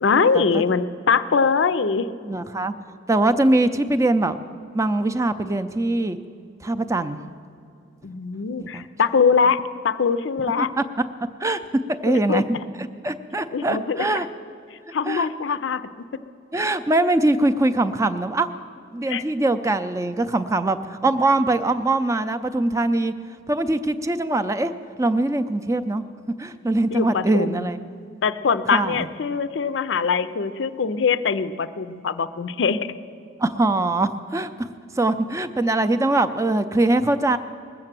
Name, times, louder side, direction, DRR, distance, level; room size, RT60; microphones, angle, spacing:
voice 1, 0.0-2.1 8.0-9.6 9.8-10.7 12.1-12.4 13.5-14.1 14.9-15.8 19.1-19.2 26.9-27.7 28.2-32.8, left 5 dB, 65° left, 13 dB, 0.5 m, -22 dB
voice 2, 2.2-2.7 3.1-4.4 4.7-6.2 6.6-7.2 8.6-8.9 10.6-10.8 11.4-11.6 11.9-12.6 13.0-14.3 15.1-15.3 16.5-18.5 18.9-23.1 23.5-24.7 25.0-26.0 26.4-27.8 28.7-29.1 33.4-34.7 34.9-37.4, right 2 dB, 15° right, 10 dB, 0.5 m, -22 dB
20.0 x 7.8 x 7.4 m, 2.5 s
head